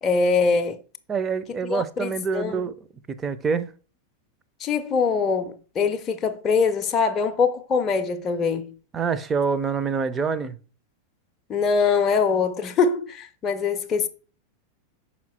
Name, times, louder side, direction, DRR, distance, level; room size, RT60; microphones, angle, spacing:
voice 1, 0.0-0.8 1.6-2.6 4.6-8.7 11.5-14.1, left 5 dB, 25° left, 0.6 m, -23 dB
voice 2, 1.1-2.7 3.1-3.7 8.9-10.6, right 5 dB, 20° right, 0.6 m, -26 dB
5.9 x 4.3 x 4.2 m
figure-of-eight pair, 90°, 0 cm